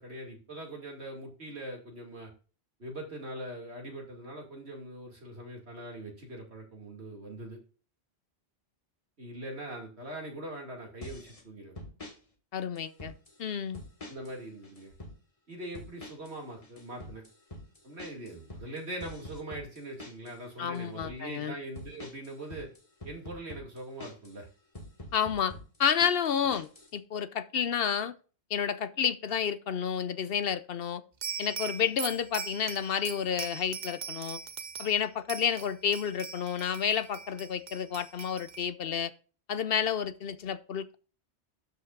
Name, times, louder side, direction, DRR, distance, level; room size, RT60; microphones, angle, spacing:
voice 1, 0.0-2.3 2.8-7.6 9.2-11.7 14.1-14.9 15.5-17.2 17.8-22.7 23.0-24.5 26.4-26.5, right 1 dB, 70° right, 2.7 m, -42 dB
sound 1, 11.0-11.4 11.8-12.2 12.8-13.4 13.7-14.4 14.6-15.2 15.7-16.4 16.6-20.4 20.7-21.2 21.8-24.4 24.7-26.9, left 1 dB, 30° left, 1.8 m, -45 dB
voice 2, 12.5-13.1 13.4-13.8 20.6-21.5 25.1-25.5 25.8-28.1 28.5-31.0 31.4-34.4 34.8-39.1 39.5-41.0, left 8 dB, 65° left, 0.8 m, -30 dB
sound 2, 31.2-35.0 35.3-38.7, right 6 dB, 50° right, 0.7 m, -41 dB
12.5 x 5.5 x 2.5 m
omnidirectional pair, 1.1 m